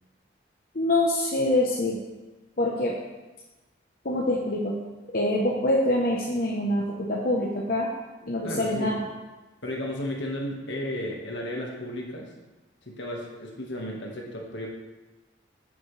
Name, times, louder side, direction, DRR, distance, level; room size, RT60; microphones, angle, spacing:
voice 1, 0.7-2.0 2.6-3.0 4.0-4.8 5.1-7.9 8.3-9.1, left 1 dB, 50° left, -3 dB, 1.0 m, -25 dB
voice 2, 8.4-8.9 9.6-12.3 12.8-14.7, left 1 dB, 70° left, -1 dB, 1.7 m, -33 dB
10.5 x 7.1 x 3.4 m, 1.1 s
head